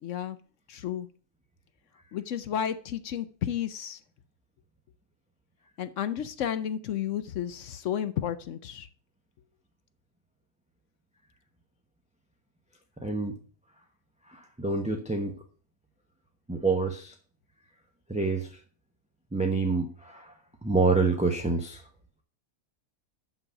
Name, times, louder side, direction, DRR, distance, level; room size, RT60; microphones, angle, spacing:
voice 1, 0.0-0.4 0.7-1.1 2.1-4.0 5.8-8.9, left 9 dB, 65° left, 0.9 m, -32 dB
voice 2, 13.0-13.4 14.3-15.3 16.5-17.1 18.1-18.6 19.3-20.3 20.6-21.8, right 3 dB, 5° right, 0.8 m, -27 dB
11.5 x 4.0 x 5.7 m
omnidirectional pair, 1.5 m